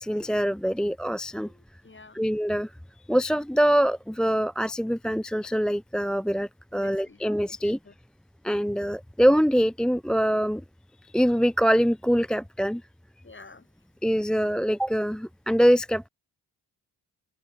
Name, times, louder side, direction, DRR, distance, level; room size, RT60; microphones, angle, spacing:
voice 1, 0.0-1.5 2.1-2.7 3.1-7.8 8.4-10.6 11.0-12.8 14.0-16.1, equal, ahead, 0.5 m, -24 dB
voice 2, 1.5-2.2 6.7-7.9 13.2-13.7, left 3 dB, 25° left, 3.9 m, -50 dB
open air
supercardioid pair, 60°, 43 cm